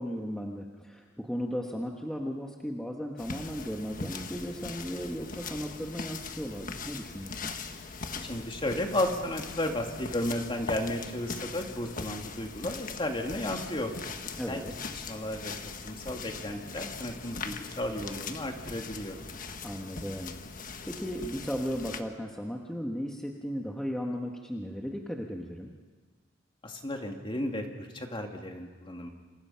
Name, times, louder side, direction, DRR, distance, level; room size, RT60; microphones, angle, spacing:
voice 1, 0.0-7.5 14.4-14.7 19.6-25.7, equal, 5° left, 0 dB, 1.4 m, -36 dB
sound 1, 3.2-22.0, left 4 dB, 45° left, 1.4 m, -41 dB
voice 2, 8.2-13.9 14.5-14.6 15.1-15.5 15.8-19.2 26.6-29.1, left 1 dB, 25° left, 3 dB, 2.6 m, -33 dB
28.5 x 27.5 x 5.8 m, 1.5 s
head